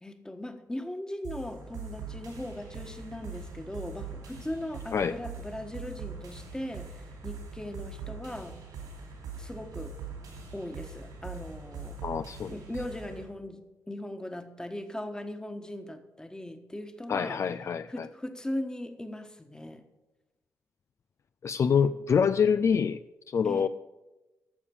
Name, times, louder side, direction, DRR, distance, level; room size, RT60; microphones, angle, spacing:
voice 1, 0.0-8.6 9.4-10.0 10.5-12.0 12.5-17.4 17.9-19.8 23.4-23.7, left 1 dB, 10° left, 7 dB, 1.3 m, -39 dB
sound 1, 1.2-13.2, right 5 dB, 85° right, 4.4 m, -42 dB
voice 2, 12.0-12.5 17.1-18.1 21.4-23.0 23.3-23.7, left 6 dB, 50° left, 12 dB, 0.4 m, -26 dB
12.0 x 7.0 x 7.0 m, 1.1 s
cardioid pair, 65°, 6 cm